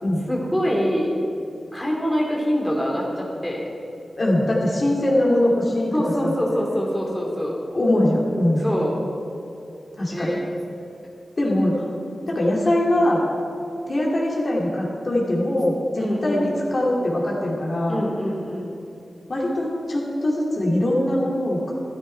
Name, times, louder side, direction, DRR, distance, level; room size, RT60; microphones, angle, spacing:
voice 1, 0.3-1.1 1.7-3.6 5.9-7.5 8.6-9.0 10.1-10.4 11.4-11.6 16.0-16.5 17.9-18.7, equal, 10° left, -3 dB, 2.6 m, -24 dB
voice 2, 4.2-6.4 7.7-8.6 10.0-10.4 11.4-11.8 12.2-13.2 13.9-18.0 19.3-21.7, left 1 dB, 45° left, -4 dB, 2.5 m, -22 dB
13.5 x 13.0 x 4.5 m, 2.8 s
wide cardioid pair, 105°, 0 cm